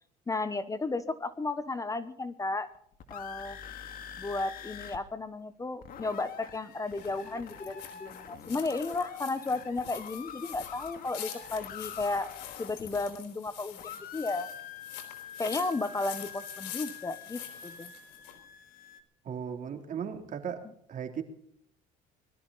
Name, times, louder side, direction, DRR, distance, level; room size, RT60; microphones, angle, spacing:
voice 1, 0.3-2.7 3.1-3.6 4.2-12.3 12.6-14.5 15.4-17.9, left 3 dB, 20° left, 13 dB, 1.0 m, -34 dB
sound 1, 2.7-5.0 5.3-5.4 5.6-13.5 13.8-19.0, left 8 dB, 55° left, 2.2 m, -45 dB
sound 2, 6.1-18.4, left 10 dB, 80° left, 4.1 m, -46 dB
voice 2, 19.2-21.2, right 7 dB, 45° right, 5 dB, 3.3 m, -37 dB
22.0 x 13.0 x 4.1 m, 0.68 s
cardioid pair, 110°, 18 cm